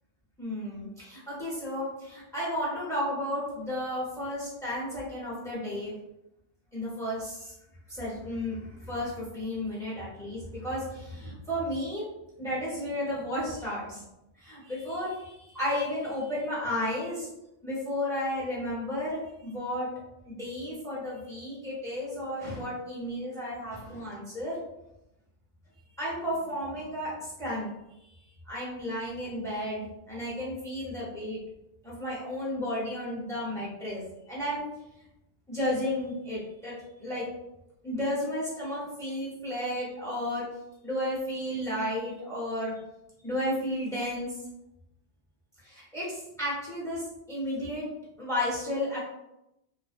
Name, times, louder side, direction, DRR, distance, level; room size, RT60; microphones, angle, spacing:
voice 1, 0.4-5.9 6.7-7.5 7.9-12.1 12.4-14.0 14.4-17.3 17.6-19.9 20.3-24.6 26.0-27.7 28.5-31.4 31.8-34.0 34.3-34.7 35.5-37.2 37.8-40.4 40.8-42.7 43.2-44.3 45.6-47.9 48.2-49.0, left 1 dB, 5° left, -7 dB, 0.7 m, -33 dB
2.5 x 2.1 x 2.5 m, 0.87 s
omnidirectional pair, 1.3 m